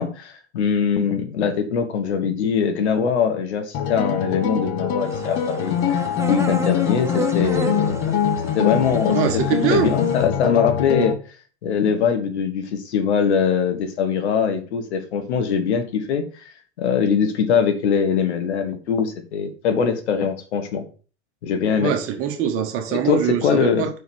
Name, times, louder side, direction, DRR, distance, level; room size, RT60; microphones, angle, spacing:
voice 1, 0.0-8.0 8.5-9.2 9.7-11.1 11.6-16.2 16.8-20.8 21.4-21.9 22.9-23.9, left 6 dB, 65° left, 6 dB, 1.6 m, -22 dB
sound 1, 3.7-11.1, left 8 dB, 35° left, 1.0 m, -23 dB
sound 2, 5.1-10.3, right 3 dB, 10° right, 0.6 m, -33 dB
voice 2, 9.1-9.9 21.7-23.9, right 8 dB, 40° right, 5 dB, 1.6 m, -23 dB
5.5 x 4.7 x 6.0 m, 0.37 s
hypercardioid pair, 95°, 36 cm